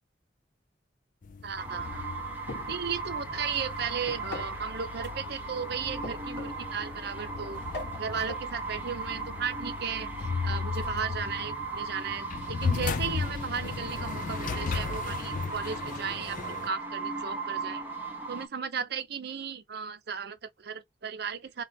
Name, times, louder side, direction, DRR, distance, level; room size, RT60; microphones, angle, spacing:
sound 1, 1.2-16.7, left 5 dB, 45° left, 0.5 m, -36 dB
voice 1, 1.4-2.1 2.7-7.6 8.0-17.8 18.3-21.6, right 6 dB, 60° right, 0.6 m, -35 dB
sound 2, 1.6-18.5, right 3 dB, 10° right, 1.0 m, -37 dB
sound 3, 2.5-2.9 4.1-4.7 6.0-6.7 7.7-8.5, left 2 dB, 65° left, 1.6 m, -41 dB
3.0 x 2.9 x 3.9 m
head